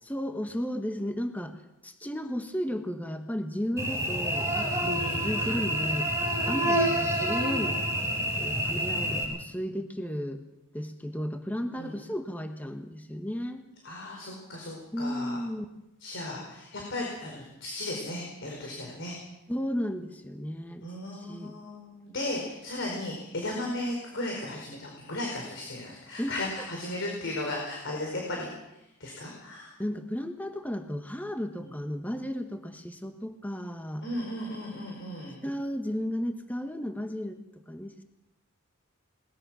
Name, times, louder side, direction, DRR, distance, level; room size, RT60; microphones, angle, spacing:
voice 1, 0.0-1.6 1.8-6.1 6.5-7.8 8.4-10.4 10.7-13.7 14.9-15.6 19.5-20.8 21.1-21.5 26.2-26.4 29.8-34.0 35.4-38.0, equal, 10° left, 6 dB, 1.2 m, -34 dB
Cricket / Buzz, 3.8-9.2, equal, 15° right, 7.1 m, -28 dB
voice 2, 13.8-15.4 16.0-19.2 20.8-28.5 29.0-29.7 31.6-31.7 34.0-35.4, left 1 dB, 60° left, -1 dB, 4.7 m, -36 dB
21.0 x 20.0 x 6.2 m, 0.92 s
head